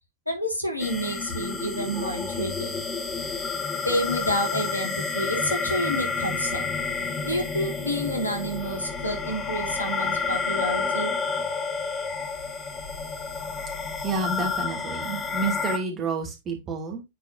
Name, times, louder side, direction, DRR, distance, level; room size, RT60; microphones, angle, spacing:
voice 1, 0.3-2.7 3.9-6.7 7.2-11.1, equal, 90° left, 3 dB, 1.7 m, -29 dB
sound 1, 0.8-15.8, left 4 dB, 15° left, 1.7 m, -30 dB
voice 2, 14.0-17.0, right 4 dB, 30° right, 1 dB, 2.5 m, -29 dB
9.4 x 4.3 x 2.7 m, 0.22 s
figure-of-eight pair, 90°, 0 cm